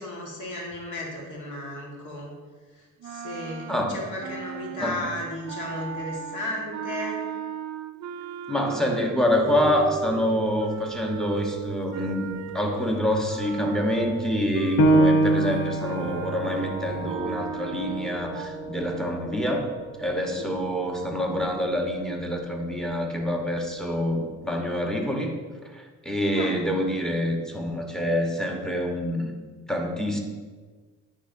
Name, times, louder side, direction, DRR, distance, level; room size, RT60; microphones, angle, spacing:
voice 1, 0.0-2.3 2.7-7.2 20.3-20.5 26.3-26.6, left 1 dB, 85° left, -2 dB, 1.6 m, -34 dB
sound 1, 3.0-12.8 13.3-18.5, right 10 dB, 65° right, 0.5 m, -37 dB
voice 2, 8.5-19.7 20.0-25.3 25.6-29.3 29.7-30.2, left 1 dB, ahead, 1 dB, 1.0 m, -26 dB
sound 2, 9.3-17.2, right 7 dB, 25° right, 1.0 m, -40 dB
Piano, 14.8-20.0 20.4-20.5 21.1-21.6, right 1 dB, 50° left, 0.6 m, -25 dB
9.9 x 3.7 x 2.6 m, 1.4 s
cardioid pair, 90°, 30 cm